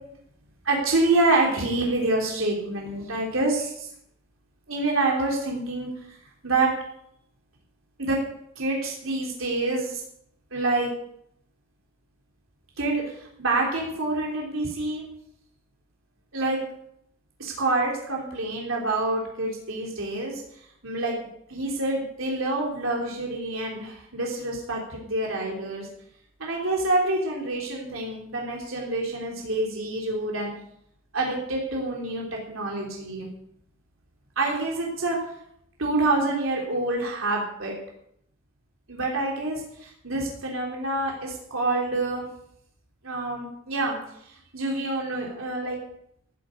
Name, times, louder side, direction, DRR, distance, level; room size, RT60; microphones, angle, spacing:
voice 1, 0.6-3.9 4.7-5.9 6.4-6.7 8.0-8.2 8.6-10.0 10.5-10.9 12.8-15.0 16.3-16.6 17.4-20.4 20.8-21.2 21.5-25.9 26.4-30.5 31.1-33.3 34.4-35.2 35.8-37.7 38.9-42.3 43.0-44.0 44.5-45.8, right 2 dB, 85° right, -1 dB, 3.2 m, -27 dB
15.0 x 7.5 x 8.4 m, 0.73 s
head